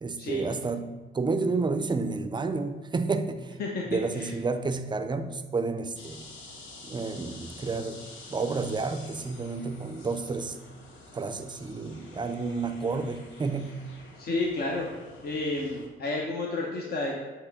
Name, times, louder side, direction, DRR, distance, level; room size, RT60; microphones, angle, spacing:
voice 1, 0.0-3.5 3.9-6.2 6.8-8.0 8.3-10.6 11.1-13.7, right 4 dB, 25° right, 9 dB, 0.5 m, -30 dB
voice 2, 3.6-4.3 14.2-14.9 15.2-17.1, left 2 dB, 50° left, -2 dB, 0.9 m, -31 dB
sound 1, 6.0-15.9, left 2 dB, 75° left, 1.1 m, -48 dB
8.3 x 3.1 x 4.8 m, 1.3 s
cardioid pair, 90°, 20 cm